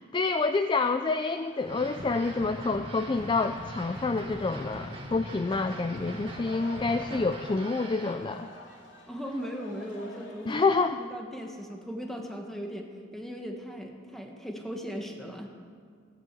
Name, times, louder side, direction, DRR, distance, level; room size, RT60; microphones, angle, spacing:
voice 1, 0.1-8.5 10.5-11.0, left 3 dB, 25° left, 9 dB, 0.3 m, -28 dB
sound 1, 1.3-10.6, left 1 dB, 75° left, 2.7 m, -49 dB
sound 2, 1.6-8.2, right 1 dB, 30° right, 2.3 m, -41 dB
voice 2, 9.1-10.6 11.0-12.9 13.1-15.5, equal, ahead, 2 dB, 1.6 m, -38 dB
15.5 x 10.5 x 7.7 m, 2.1 s
head